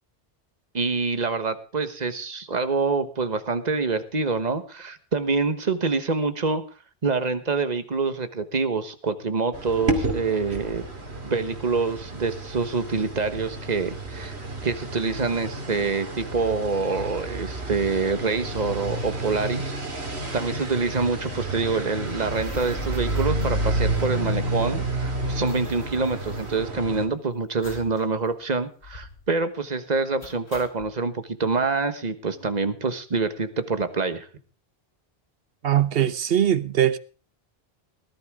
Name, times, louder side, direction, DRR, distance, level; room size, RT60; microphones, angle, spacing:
voice 1, 0.7-6.6 7.0-10.8 11.2-14.4 14.6-19.7 20.3-34.3, right 4 dB, 40° right, 1.4 m, -26 dB
sound 1, 9.5-27.1, right 2 dB, 90° right, 2.8 m, -30 dB
sound 2, 22.2-24.5 24.7-24.8 25.0-27.1 27.6-28.0 28.3-28.4 28.8-29.3 30.2-30.9, left 3 dB, 80° left, 2.0 m, -42 dB
voice 2, 35.6-37.0, right 10 dB, 65° right, 1.1 m, -21 dB
19.0 x 12.0 x 3.6 m
omnidirectional pair, 1.1 m